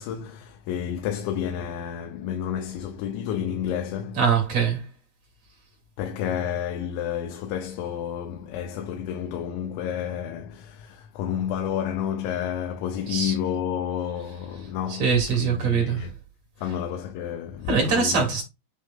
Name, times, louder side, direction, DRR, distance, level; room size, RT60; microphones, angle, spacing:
voice 1, 0.0-4.2 6.0-16.1 16.6-18.2, left 9 dB, 90° left, 3.1 m, -30 dB
voice 2, 4.2-4.8 13.1-13.3 14.9-16.1 17.7-18.4, right 6 dB, 45° right, 2.5 m, -23 dB
8.6 x 3.0 x 3.6 m
omnidirectional pair, 5.1 m